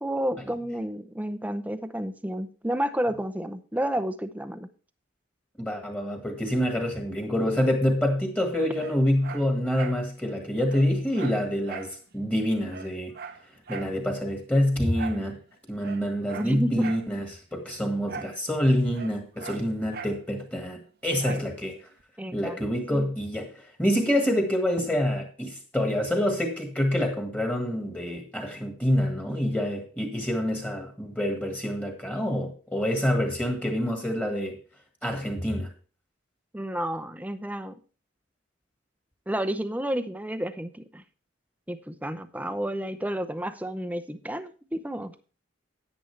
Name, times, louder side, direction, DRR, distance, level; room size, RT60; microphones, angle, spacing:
voice 1, 0.0-4.7 16.4-16.9 21.3-21.4 22.2-22.6 22.9-23.1 24.8-24.9 36.5-37.8 39.3-41.0 41.7-45.1, right 1 dB, 10° right, 10 dB, 0.6 m, -31 dB
voice 2, 5.6-13.1 13.7-15.4 15.7-17.2 17.5-21.8 22.3-23.5 23.8-34.6 35.0-35.7, equal, 10° left, 3 dB, 1.7 m, -26 dB
Dog, 8.8-10.0 10.4-10.5 10.7-12.0 12.3-12.4 12.7-14.0 14.9-15.3 15.8-17.1 18.1-18.4 18.7-20.2 21.2-21.5 22.0-22.1, right 5 dB, 55° right, 0.8 m, -40 dB
10.0 x 9.3 x 3.3 m, 0.38 s
head